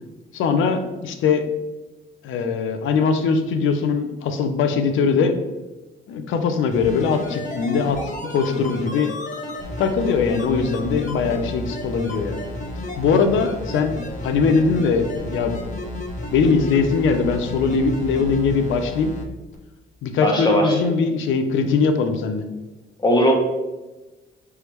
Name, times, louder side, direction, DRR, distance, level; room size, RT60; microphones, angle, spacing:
voice 1, 0.3-1.4 2.2-5.3 6.1-8.0 8.3-9.1 9.8-12.4 13.0-15.6 16.3-19.1 20.0-22.4, left 5 dB, 80° left, 7 dB, 0.6 m, -21 dB
sound 1, 6.7-19.2 19.5-19.6, left 1 dB, 40° left, 0.9 m, -32 dB
voice 2, 20.2-20.8 23.0-23.3, equal, 20° left, -1 dB, 1.2 m, -18 dB
4.7 x 3.4 x 3.1 m, 1.1 s
cardioid pair, 90°, 20 cm